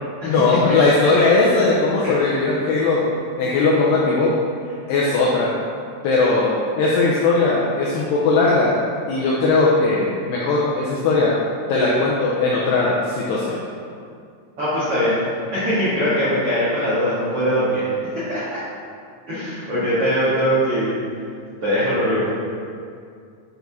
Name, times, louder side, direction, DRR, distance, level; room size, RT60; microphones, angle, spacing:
voice 1, 0.2-3.1 3.4-4.3 4.9-5.5 6.0-8.8 9.1-11.3 11.7-13.6, left 3 dB, 85° left, -4 dB, 2.4 m, -18 dB
voice 2, 14.6-15.2 15.5-17.8 18.3-18.6 19.3-21.0 21.6-22.2, equal, 75° right, -12 dB, 1.3 m, -21 dB
9.1 x 4.6 x 4.0 m, 2.3 s
omnidirectional pair, 5.7 m